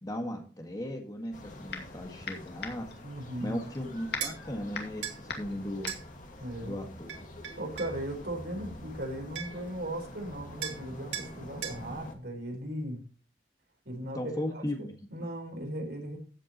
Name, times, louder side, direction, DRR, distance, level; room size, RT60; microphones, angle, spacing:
voice 1, 0.0-2.9 3.4-6.0 6.6-7.1 14.1-14.9, left 1 dB, 20° left, 3 dB, 1.8 m, -37 dB
sound 1, 1.2-2.0 2.2-7.3, left 4 dB, 65° left, 2.3 m, -40 dB
sound 2, 1.3-12.1, left 1 dB, 45° left, 2.1 m, -47 dB
voice 2, 3.0-3.6 6.4-6.7 7.6-13.0 13.8-16.2, right 1 dB, 65° right, 2 dB, 4.4 m, -37 dB
sound 3, 4.2-4.4 5.0-5.2 5.9-6.0 7.1-8.0 9.0-9.1 9.4-9.7 10.6-10.8 11.1-11.3 11.6-11.8, right 8 dB, 85° right, 2.4 m, -37 dB
14.5 x 8.2 x 3.1 m, 0.38 s
head